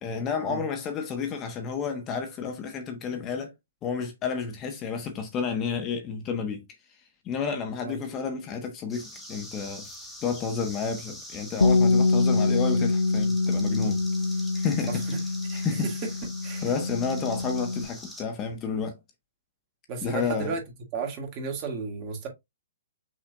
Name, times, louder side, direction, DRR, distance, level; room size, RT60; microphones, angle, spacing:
voice 1, 0.0-3.5 3.8-6.6 7.2-9.8 10.2-14.0 14.5-15.0 15.5-15.9 16.6-19.0 20.0-20.6, left 6 dB, 25° left, 1.2 m, -31 dB
sound 1, 8.9-18.2, left 1 dB, 5° left, 1.4 m, -43 dB
Bass guitar, 11.6-17.9, left 3 dB, 85° left, 0.5 m, -25 dB
voice 2, 14.9-15.2 15.5-15.9 16.4-16.7 19.9-20.6 20.9-22.3, right 5 dB, 35° right, 1.9 m, -33 dB
5.9 x 3.2 x 2.6 m
figure-of-eight pair, 125°, 0 cm